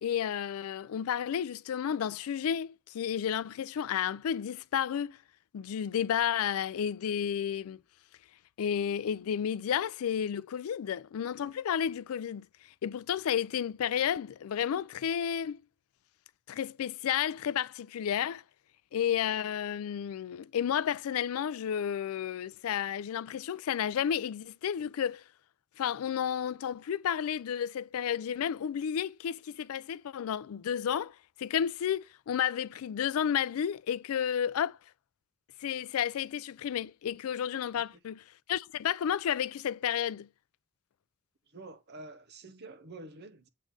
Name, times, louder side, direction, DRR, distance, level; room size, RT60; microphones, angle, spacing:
voice 1, 0.0-5.2 5.5-7.8 8.6-12.4 12.8-15.6 16.5-18.4 18.9-25.2 25.8-34.8 35.6-40.3, left 9 dB, 75° left, 0.3 m, -32 dB
voice 2, 41.5-43.5, right 2 dB, 50° right, 0.8 m, -48 dB
7.6 x 3.1 x 5.2 m
head